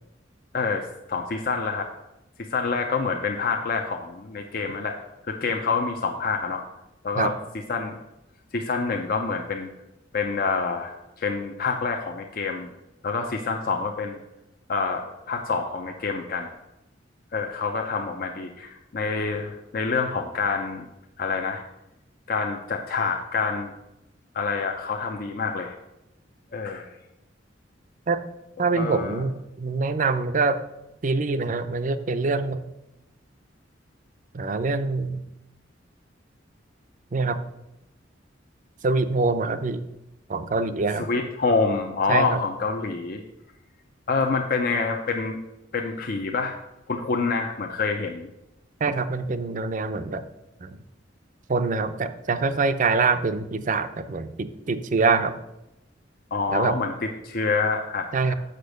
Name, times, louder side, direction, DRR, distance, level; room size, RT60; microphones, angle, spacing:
voice 1, 1.1-1.9 2.4-4.9 5.2-6.6 7.0-7.3 7.7-8.0 8.5-9.7 10.1-12.7 13.0-14.2 14.7-16.5 17.3-20.9 21.2-21.6 22.3-23.7 24.3-25.7 26.5-26.9 28.6-29.2 41.0-43.2 44.1-45.4 45.7-46.5 46.9-48.3 56.3-58.3, left 4 dB, 55° left, 3 dB, 0.6 m, -27 dB
voice 2, 28.6-30.6 31.0-32.6 34.3-35.2 37.1-37.4 38.8-39.8 40.3-41.1 42.1-42.4 48.8-50.2 50.6-50.8 51.5-55.3 56.5-56.8 58.1-58.3, right 4 dB, 45° right, 11 dB, 0.5 m, -24 dB
6.7 x 6.0 x 6.5 m, 0.92 s
head